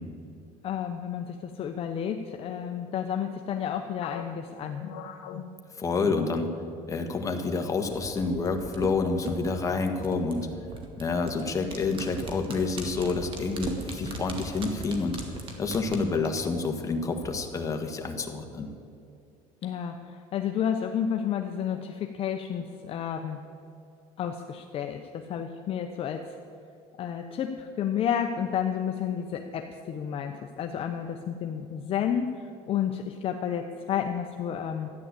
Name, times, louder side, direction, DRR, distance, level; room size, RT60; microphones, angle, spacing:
voice 1, 0.6-4.8 19.6-23.4 24.2-26.4 27.0-34.9, left 8 dB, 40° left, 5 dB, 0.8 m, -31 dB
sound 1, 4.0-6.9 7.2-7.4 8.0-8.5, left 7 dB, 65° left, 1.2 m, -42 dB
voice 2, 5.8-6.5 6.9-10.5 11.0-15.2 15.6-18.7, left 4 dB, 25° left, 4 dB, 1.5 m, -28 dB
sound 2, 7.9-17.3 17.6-17.7, right 3 dB, 35° right, 2.1 m, -39 dB
13.0 x 9.9 x 8.3 m, 2.5 s
cardioid pair, 135°, 14 cm